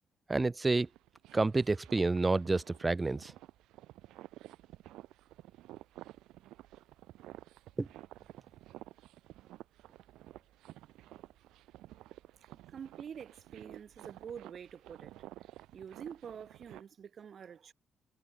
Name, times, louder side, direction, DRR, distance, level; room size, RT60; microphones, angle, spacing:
voice 1, 0.3-0.9 1.3-3.3 7.8-7.9, right 3 dB, 20° right, 0.5 m, -29 dB
sound 1, 0.7-16.8, right 15 dB, 90° right, 2.7 m, -53 dB
voice 2, 12.5-15.2 15.7-17.7, right 7 dB, 55° right, 3.8 m, -47 dB
cardioid pair, 90°, 0 cm